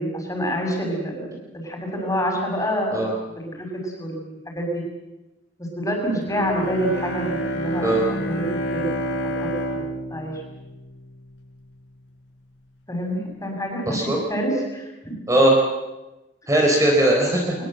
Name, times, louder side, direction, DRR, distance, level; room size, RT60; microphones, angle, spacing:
voice 1, 0.0-3.0 3.3-4.8 5.7-8.4 8.7-9.0 9.4-9.8 10.1-10.3 12.9-14.0 14.3-15.2, equal, 20° left, 1 dB, 6.6 m, -27 dB
Bowed string instrument, 6.3-11.5, equal, 80° left, 6.4 m, -29 dB
voice 2, 13.9-14.2 15.3-15.5 16.5-17.5, right 1 dB, 20° right, -1 dB, 4.2 m, -19 dB
23.5 x 20.5 x 7.8 m, 1.0 s
head